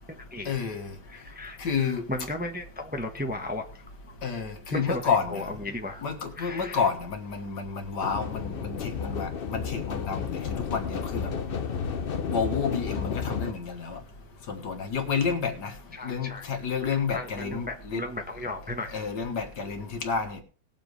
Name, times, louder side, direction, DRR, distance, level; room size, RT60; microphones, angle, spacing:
voice 1, 0.5-0.9 1.6-2.0 4.2-5.4 6.0-11.3 12.3-14.0 14.5-15.7 16.0-18.1 18.9-20.4, left 5 dB, 75° left, 5 dB, 2.1 m, -30 dB
voice 2, 1.1-3.8 4.7-6.0 6.4-6.9 15.9-16.5 16.8-18.9, left 1 dB, 5° right, 3 dB, 1.0 m, -35 dB
sound 1, 8.0-13.5, left 6 dB, 50° left, 0.7 m, -32 dB
19.5 x 7.4 x 3.3 m, 0.39 s
omnidirectional pair, 1.9 m